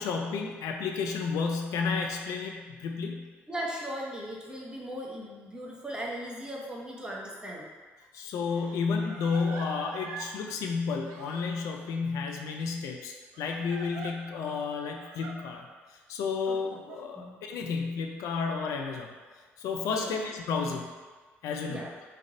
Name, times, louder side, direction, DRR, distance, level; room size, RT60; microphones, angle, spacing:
voice 1, 0.0-3.3 8.1-19.1 19.6-20.9 21.4-21.9, left 5 dB, 70° left, 2 dB, 0.4 m, -32 dB
voice 2, 3.5-7.7 16.5-16.6 17.2-17.4 19.9-20.1 21.7-21.9, equal, 15° right, -3 dB, 0.9 m, -38 dB
Crying sobbing, 7.6-7.7 8.5-10.3 11.1-11.9 13.3-14.1 15.0-15.4 16.4-17.0, right 5 dB, 80° right, 0.4 m, -44 dB
3.3 x 2.5 x 3.8 m, 1.4 s
hypercardioid pair, 55°, 6 cm